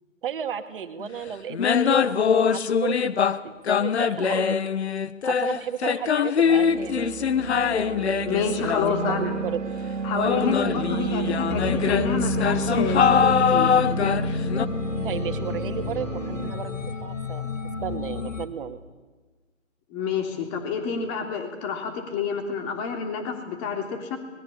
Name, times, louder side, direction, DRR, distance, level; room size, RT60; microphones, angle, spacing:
voice 1, 0.2-4.6 5.2-7.1 8.7-9.6 15.0-17.5 17.8-18.8, right 8 dB, 45° right, 7 dB, 2.2 m, -34 dB
sound 1, 1.0-1.1 1.5-3.4 3.7-9.5 10.2-14.6, left 7 dB, 55° left, 1.2 m, -23 dB
sound 2, 6.4-16.5, right 5 dB, 65° right, 2.3 m, -31 dB
voice 2, 8.2-9.2 10.0-13.7 19.9-24.2, left 6 dB, 25° left, 4 dB, 3.3 m, -29 dB
sound 3, 11.5-18.5, left 4 dB, 75° left, 2.3 m, -30 dB
25.5 x 21.0 x 8.6 m, 1.3 s
figure-of-eight pair, 140°, 39 cm